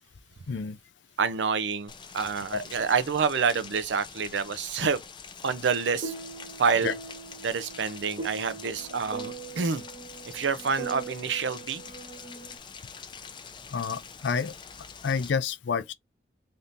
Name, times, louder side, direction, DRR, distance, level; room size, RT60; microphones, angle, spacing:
voice 1, 0.5-0.8 2.5-2.6 6.8-6.9 13.7-14.5 15.0-15.9, left 6 dB, 85° left, 0.4 m, -29 dB
voice 2, 1.2-5.0 5.4-6.1 6.6-6.9 7.4-9.8 10.3-11.8, right 5 dB, 85° right, 0.5 m, -27 dB
Rain, 1.9-15.3, left 6 dB, 25° left, 0.4 m, -45 dB
sound 1, 5.6-12.6, right 4 dB, 30° right, 1.0 m, -41 dB
3.5 x 2.7 x 2.5 m
head